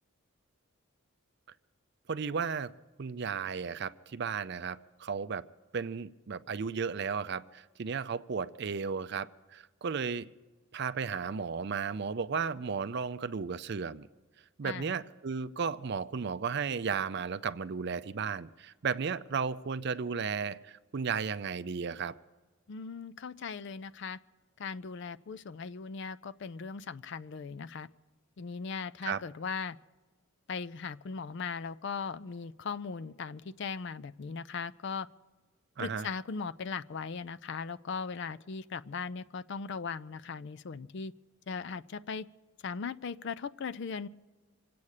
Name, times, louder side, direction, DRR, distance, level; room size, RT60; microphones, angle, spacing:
voice 1, 2.1-2.7 3.0-5.4 5.7-10.3 10.7-14.1 14.6-22.2 29.0-29.2 35.8-36.1, right 5 dB, 50° right, 14 dB, 0.4 m, -34 dB
voice 2, 22.7-24.2 24.6-27.9 28.4-29.8 30.5-35.1 35.8-41.1 41.5-42.3 42.6-44.1, left 5 dB, 55° left, 14 dB, 0.4 m, -38 dB
25.5 x 8.5 x 6.5 m, 1.3 s
head